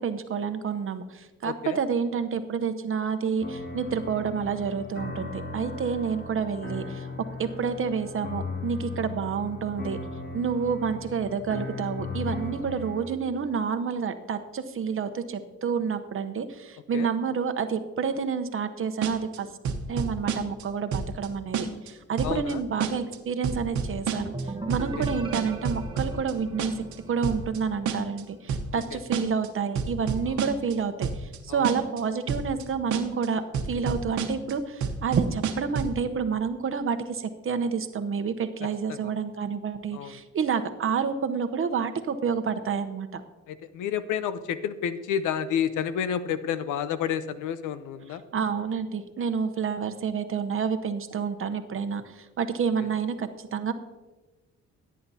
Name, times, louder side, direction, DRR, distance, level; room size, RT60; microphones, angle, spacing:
voice 1, 0.0-7.1 7.4-10.0 10.3-19.5 19.9-24.3 24.7-26.7 27.1-33.4 33.7-43.2 48.1-53.7, right 6 dB, 45° right, 9 dB, 0.8 m, -29 dB
voice 2, 1.4-1.8 16.9-17.1 22.2-22.6 25.0-25.1 28.9-29.0 31.5-31.6 38.9-39.0 39.9-40.1 43.5-48.2, left 8 dB, 80° left, 13 dB, 0.7 m, -30 dB
sound 1, 3.4-13.1, left 3 dB, 35° left, 1.7 m, -37 dB
sound 2, 19.0-19.4 19.6-20.6 20.9-21.3 21.5-21.9 22.2-22.5 22.8-23.2 23.4-24.4 24.7-26.3 26.6-26.9 27.2-27.6 27.9-28.2 28.5-28.8 29.1-29.5 29.8-30.7 31.0-31.4 31.6-32.0 32.3-32.6 32.9-33.3 33.5-34.5 34.8-36.0, right 6 dB, 70° right, 1.1 m, -29 dB
sound 3, 24.2-27.9, right 2 dB, 15° right, 1.2 m, -38 dB
16.5 x 9.4 x 2.8 m, 1.2 s
cardioid pair, 90°, 30 cm